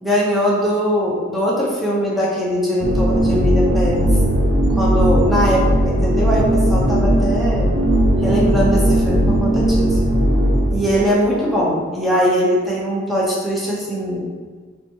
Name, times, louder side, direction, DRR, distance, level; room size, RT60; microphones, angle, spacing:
voice 1, 0.0-4.1 4.7-7.7 8.2-10.0 10.7-14.2, equal, ahead, -6 dB, 0.7 m, -20 dB
sound 1, 2.8-11.1, right 1 dB, 65° right, 0.6 m, -17 dB
3.5 x 2.9 x 2.7 m, 1.5 s
head